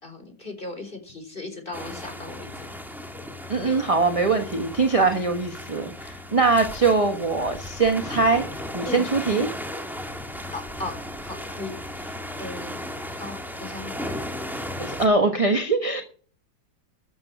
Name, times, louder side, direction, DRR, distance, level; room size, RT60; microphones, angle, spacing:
voice 1, 0.0-2.7 3.6-3.9 8.8-9.1 10.5-14.1, left 2 dB, 25° left, 6 dB, 4.1 m, -38 dB
sound 1, 1.7-15.1, left 1 dB, ahead, 1.7 m, -35 dB
voice 2, 3.5-9.5 15.0-16.0, right 3 dB, 20° right, 5 dB, 1.0 m, -22 dB
13.0 x 7.8 x 5.9 m, 0.42 s
omnidirectional pair, 2.1 m